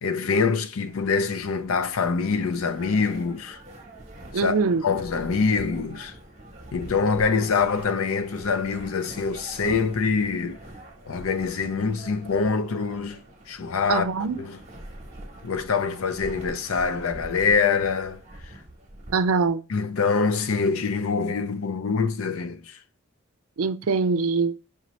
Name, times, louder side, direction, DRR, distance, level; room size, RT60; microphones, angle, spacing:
voice 1, 0.0-3.6 4.3-6.1 6.7-10.6 11.1-13.2 13.5-14.0 14.4-14.6 15.4-18.5 19.7-22.8, left 5 dB, 80° left, 0.5 m, -25 dB
sound 1, 0.8-19.5, right 1 dB, 35° right, 0.9 m, -44 dB
voice 2, 4.3-4.8 13.9-14.4 19.1-19.6 23.6-24.5, right 4 dB, 90° right, 0.4 m, -23 dB
4.8 x 2.9 x 3.0 m
head